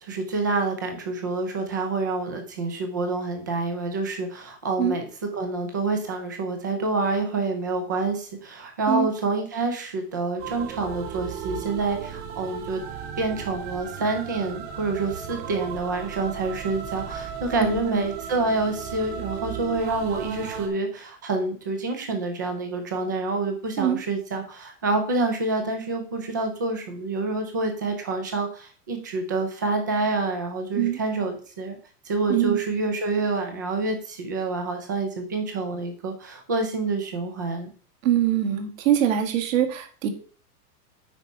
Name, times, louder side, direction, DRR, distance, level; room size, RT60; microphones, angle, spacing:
voice 1, 0.0-5.1 5.3-12.8 13.2-31.8 32.0-37.7, right 3 dB, 15° right, 5 dB, 0.3 m, -27 dB
sound 1, 10.4-20.7, right 7 dB, 40° right, 1.9 m, -36 dB
voice 2, 17.6-18.0 23.8-24.0 30.8-31.0 32.3-32.6 38.0-40.1, right 10 dB, 55° right, 5 dB, 1.9 m, -23 dB
9.1 x 4.6 x 5.3 m, 0.42 s
supercardioid pair, 175°, 46 cm